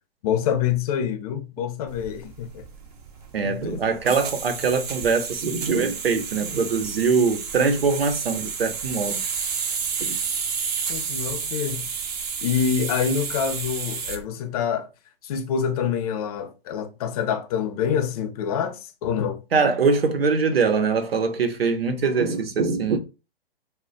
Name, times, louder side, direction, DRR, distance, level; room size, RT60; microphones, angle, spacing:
voice 1, 0.2-2.6 3.4-3.8 10.9-11.8 12.4-14.9 15.2-19.4, left 8 dB, 40° left, 0.6 m, -26 dB
sound 1, 1.9-14.2, right 6 dB, 40° right, 0.7 m, -31 dB
voice 2, 3.3-9.2 10.0-10.2 19.5-23.0, right 4 dB, 80° right, 0.8 m, -23 dB
2.3 x 2.1 x 3.8 m
hypercardioid pair, 125°, 29 cm